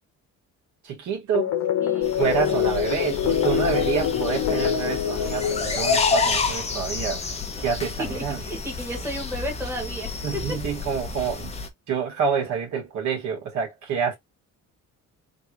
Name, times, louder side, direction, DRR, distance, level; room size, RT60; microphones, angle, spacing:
voice 1, 0.8-1.6 2.2-7.2 7.6-8.4 10.2-11.5 11.9-14.2, right 7 dB, 70° right, 1.8 m, -27 dB
sound 1, 1.3-6.5, left 9 dB, 75° left, 0.9 m, -25 dB
voice 2, 1.8-2.2 8.0-10.4, equal, 10° right, 1.3 m, -33 dB
sound 2, 2.0-11.7, left 4 dB, 20° left, 0.7 m, -29 dB
3.5 x 2.4 x 2.9 m
cardioid pair, 135°, 30 cm